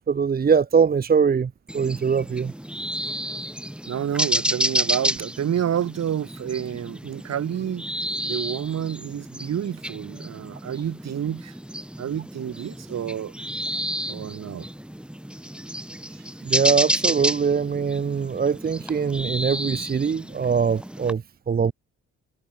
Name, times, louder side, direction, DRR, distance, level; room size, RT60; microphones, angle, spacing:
voice 1, 0.0-2.5 16.4-21.7, right 6 dB, 30° right, 0.9 m, -22 dB
sound 1, 1.7-21.1, equal, 5° right, 3.3 m, -30 dB
voice 2, 3.9-7.8 8.2-11.5 12.0-13.3 14.1-14.7, right 9 dB, 60° right, 2.9 m, -29 dB
cardioid pair, 90°, 30 cm